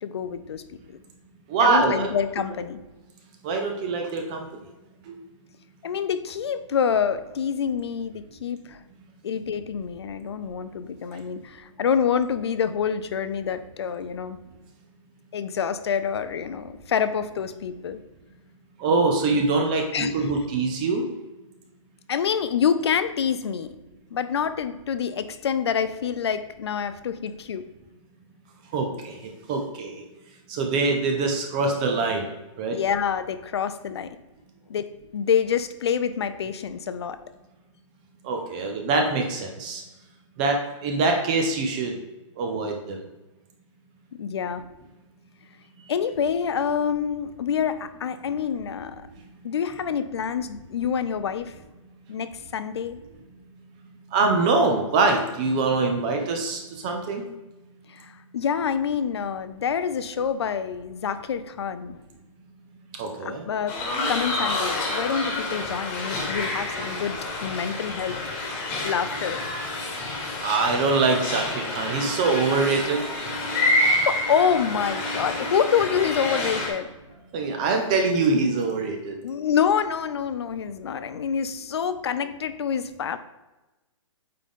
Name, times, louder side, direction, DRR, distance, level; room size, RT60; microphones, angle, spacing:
voice 1, 0.0-0.6 1.6-2.8 5.8-8.8 9.2-14.4 15.3-18.0 19.9-20.3 22.1-23.7 24.1-27.7 32.7-34.2 34.7-37.2 44.1-44.6 45.9-49.1 49.4-51.5 52.1-53.0 57.9-62.0 63.2-63.8 64.1-69.4 73.8-76.9 79.2-83.2, left 7 dB, 55° left, 12 dB, 0.4 m, -27 dB
voice 2, 1.5-2.1 3.4-4.5 5.1-5.2 18.8-21.1 28.7-29.2 29.5-30.0 30.5-32.2 32.6-32.8 38.2-39.8 40.4-41.9 42.4-43.0 54.1-57.3 63.0-63.4 70.4-73.0 77.3-79.1, right 3 dB, 15° right, 3 dB, 0.4 m, -24 dB
sound 1, 63.7-76.7, left 2 dB, 25° left, 1.3 m, -28 dB
8.5 x 3.8 x 3.6 m, 1.1 s
hypercardioid pair, 165°, 17 cm